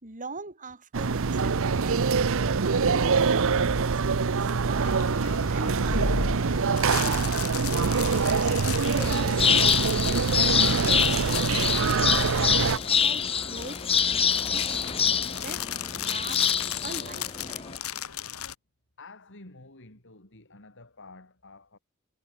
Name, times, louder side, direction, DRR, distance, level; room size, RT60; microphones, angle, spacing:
voice 1, 0.0-5.2 5.5-6.4 6.9-9.6 10.0-12.2 12.5-15.0 15.3-15.7 16.0-17.7, right 3 dB, 35° right, 3.3 m, -43 dB
sound 1, 0.9-12.8, right 5 dB, 65° right, 0.7 m, -24 dB
sound 2, 4.8-18.5, left 7 dB, 75° left, 2.1 m, -35 dB
sound 3, 8.8-17.8, left 7 dB, 25° left, 1.0 m, -26 dB
voice 2, 19.0-21.8, left 3 dB, 60° left, 4.8 m, -50 dB
head